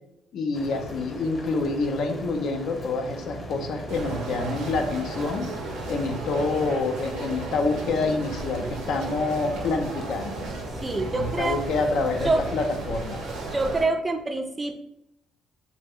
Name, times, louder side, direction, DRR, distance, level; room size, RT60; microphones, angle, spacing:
voice 1, 0.3-5.5 5.9-10.3 11.1-13.2, left 3 dB, 65° left, 4 dB, 0.4 m, -27 dB
sound 1, 0.5-13.9, left 1 dB, 30° left, 0.9 m, -39 dB
sound 2, 3.9-13.8, right 3 dB, 85° right, 0.6 m, -35 dB
voice 2, 10.8-11.6 12.2-12.4 13.5-14.8, right 2 dB, 20° right, 5 dB, 0.3 m, -25 dB
3.2 x 2.0 x 3.5 m, 0.79 s
cardioid pair, 130°, 0 cm